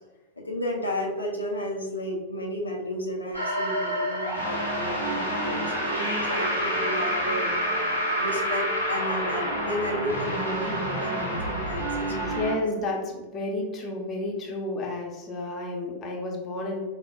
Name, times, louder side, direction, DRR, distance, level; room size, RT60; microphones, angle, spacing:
voice 1, 0.4-7.5 8.2-12.6, equal, 80° left, -1 dB, 0.4 m, -32 dB
sound 1, 3.3-12.5, equal, 90° right, 0.9 m, -28 dB
voice 2, 12.1-16.8, left 2 dB, 25° left, -1 dB, 0.6 m, -31 dB
4.2 x 2.0 x 2.3 m, 1.2 s
figure-of-eight pair, 90°, 0 cm